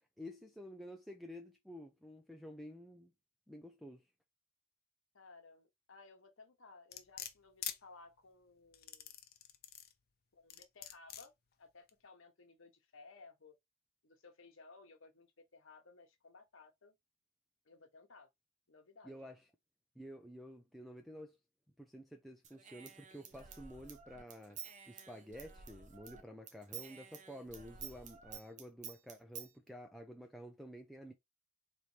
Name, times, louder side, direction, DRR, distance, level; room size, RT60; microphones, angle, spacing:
voice 1, 0.2-3.1 3.5-4.0 19.0-19.4 20.0-21.4 21.8-24.6 24.9-31.1, equal, ahead, 0.4 m, -51 dB
voice 2, 5.1-9.1 10.3-11.3 11.6-13.5 14.0-16.9 17.6-18.3 18.7-19.3, left 3 dB, 65° left, 1.0 m, -59 dB
sound 1, 6.9-7.8 8.7-9.9 10.5-11.3 11.9-12.0, left 11 dB, 45° left, 0.6 m, -44 dB
Human voice / Scissors, 22.4-26.2 26.5-29.5, right 7 dB, 35° right, 0.7 m, -51 dB
4.2 x 3.1 x 3.2 m
head